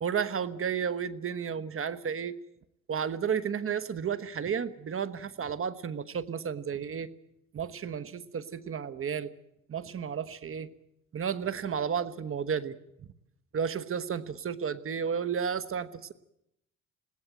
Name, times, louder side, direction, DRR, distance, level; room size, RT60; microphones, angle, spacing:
voice 1, 0.0-2.4 2.9-7.1 7.5-9.3 9.7-10.7 11.1-12.8 13.5-16.1, right 7 dB, 45° right, 14 dB, 1.2 m, -32 dB
20.5 x 17.0 x 9.0 m, 0.78 s
cardioid pair, 90°, 30 cm